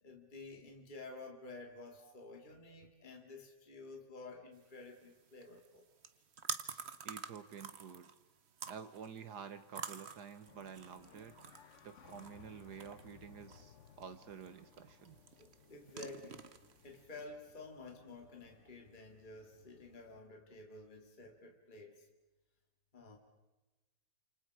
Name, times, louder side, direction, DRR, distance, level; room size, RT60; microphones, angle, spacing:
voice 1, 0.0-5.9 15.4-16.5 16.8-22.1 22.9-23.2, left 3 dB, 25° left, 2 dB, 2.5 m, -51 dB
sound 1, 4.5-17.2, right 6 dB, 45° right, 1.1 m, -49 dB
voice 2, 7.0-8.1 8.7-11.3 11.8-15.2, right 7 dB, 65° right, 11 dB, 1.6 m, -50 dB
sound 2, 10.5-20.2, left 7 dB, 50° left, 1.1 m, -62 dB
29.0 x 27.5 x 4.9 m, 1.1 s
omnidirectional pair, 1.9 m